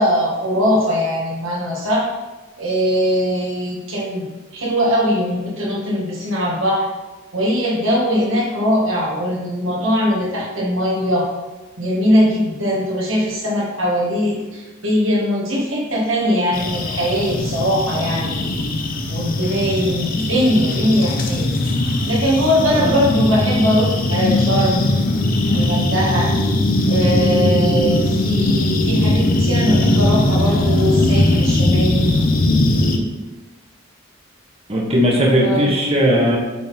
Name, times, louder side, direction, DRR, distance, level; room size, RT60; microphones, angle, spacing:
voice 1, 0.0-2.1 2.6-6.9 7.3-11.3 11.8-18.3 19.1-21.5 22.1-24.9 25.5-26.4 26.9-32.3 35.4-35.8, equal, 80° right, -3 dB, 1.8 m, -20 dB
sound 1, 16.5-33.0, left 1 dB, 45° left, 0.7 m, -19 dB
voice 2, 34.7-36.4, equal, 30° right, -3 dB, 1.3 m, -17 dB
8.4 x 3.8 x 4.3 m, 1.2 s
head